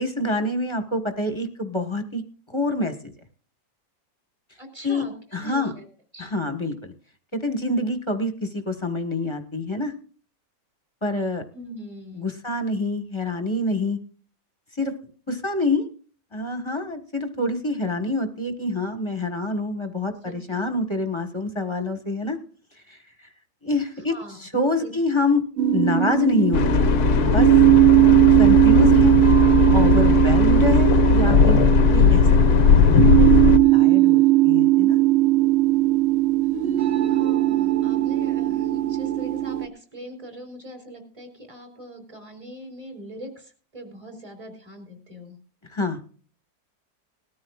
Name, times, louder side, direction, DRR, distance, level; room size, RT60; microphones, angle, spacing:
voice 1, 0.0-2.2 2.5-3.1 4.8-5.0 5.3-5.7 6.2-6.9 7.3-9.9 11.0-11.4 12.1-14.0 14.8-14.9 15.3-15.9 16.3-22.4 22.9-23.0 23.6-24.1 24.4-25.4 25.7-26.8 27.2-27.5 28.4-29.2 29.7-31.6 31.9-35.0 45.7-46.0, left 2 dB, 20° left, 6 dB, 1.3 m, -26 dB
voice 2, 4.6-5.8 6.1-6.3 11.5-12.3 20.2-20.6 24.1-24.4 24.7-24.9 28.7-28.9 36.9-45.4, equal, 20° right, 2 dB, 3.3 m, -41 dB
sound 1, 25.6-39.7, right 15 dB, 50° right, 1.1 m, -18 dB
sound 2, 26.5-33.6, left 6 dB, 85° left, 1.3 m, -18 dB
20.0 x 13.5 x 2.4 m, 0.41 s
omnidirectional pair, 1.6 m